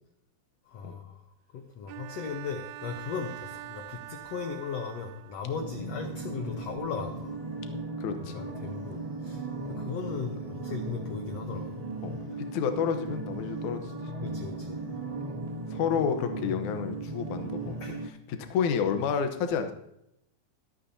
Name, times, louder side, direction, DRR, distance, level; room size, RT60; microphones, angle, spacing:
voice 1, 0.7-1.2 1.5-7.4 8.3-11.8 14.2-14.8 17.8-18.0, left 5 dB, 90° left, 5 dB, 1.4 m, -37 dB
Bowed string instrument, 1.9-5.6, right 16 dB, 85° right, 1.8 m, -44 dB
sound 1, 5.5-18.1, right 2 dB, 35° right, 0.9 m, -37 dB
voice 2, 8.0-8.4 9.8-9.9 12.0-13.9 15.3-15.4 15.7-17.8 18.3-19.7, left 7 dB, 65° left, 6 dB, 2.2 m, -30 dB
24.0 x 8.6 x 2.7 m, 0.80 s
omnidirectional pair, 4.2 m